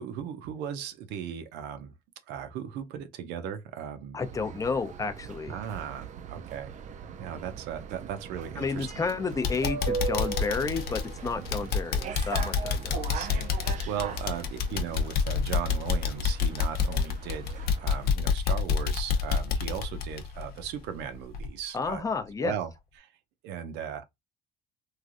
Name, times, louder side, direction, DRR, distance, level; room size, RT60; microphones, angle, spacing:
voice 1, 0.0-1.9 2.3-4.2 5.5-6.7 7.2-8.9 13.1-22.0 22.4-22.7 23.0-23.1 23.4-24.0, right 9 dB, 90° right, 0.6 m, -37 dB
voice 2, 4.1-5.5 8.6-13.0 21.7-22.5, left 4 dB, 20° left, 0.5 m, -31 dB
sound 1, 4.2-18.1, right 6 dB, 45° right, 0.4 m, -39 dB
sound 2, 8.8-9.1 9.4-21.0 21.3-21.5 21.9-22.0, left 6 dB, 65° left, 0.7 m, -28 dB
3.2 x 2.5 x 2.4 m
cardioid pair, 110°, 17 cm